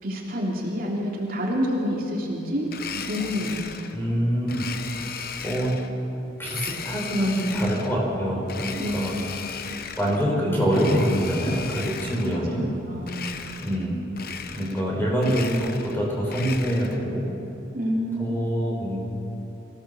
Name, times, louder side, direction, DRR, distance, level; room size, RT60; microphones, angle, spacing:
voice 1, 0.0-3.8 8.8-9.6 12.1-12.5 12.9-13.4 17.7-18.4, equal, 50° right, -2 dB, 3.0 m, -28 dB
Domestic sounds home sounds, 2.7-4.0 4.5-5.9 6.4-8.0 8.4-10.3 10.7-12.4 13.0-13.9 14.1-14.9 15.2-17.0, left 6 dB, 50° left, 1.0 m, -36 dB
voice 2, 3.9-4.7 5.0-5.7 6.4-9.1 10.0-12.6 13.6-14.0 14.5-17.3 18.2-19.0, equal, 10° left, -3 dB, 5.2 m, -25 dB
24.5 x 16.5 x 7.1 m, 2.8 s
head